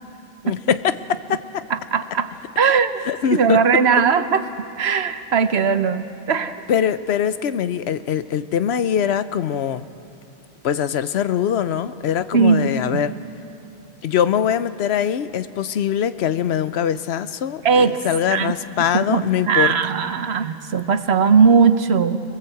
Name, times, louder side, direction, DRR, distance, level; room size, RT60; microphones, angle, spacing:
voice 1, 0.4-1.6 3.0-3.6 6.7-9.9 10.6-13.1 14.0-19.7, left 9 dB, 80° left, 13 dB, 0.9 m, -22 dB
voice 2, 1.7-3.0 3.3-4.5 4.8-6.7 12.3-13.0 17.6-18.5 18.9-22.2, right 6 dB, 85° right, 10 dB, 1.2 m, -19 dB
26.5 x 18.5 x 7.8 m, 2.8 s
omnidirectional pair, 1.1 m